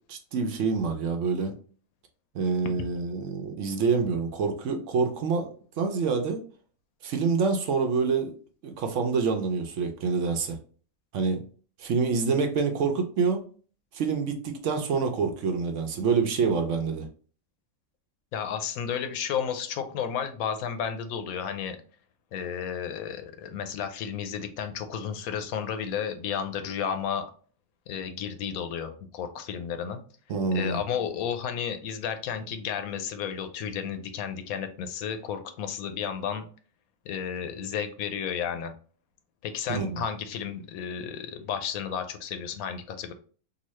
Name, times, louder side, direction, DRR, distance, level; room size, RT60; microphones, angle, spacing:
voice 1, 0.1-1.5 2.3-6.4 7.0-8.3 8.6-10.6 11.1-11.4 11.8-13.4 13.9-17.1 30.3-30.8 39.7-40.0, right 5 dB, 65° right, 4 dB, 0.9 m, -26 dB
voice 2, 18.3-21.8 22.3-27.3 27.9-30.0 30.5-36.5 37.1-38.7 39.4-43.1, left 8 dB, 90° left, 8 dB, 1.0 m, -32 dB
3.9 x 2.3 x 3.1 m, 0.41 s
omnidirectional pair, 1.5 m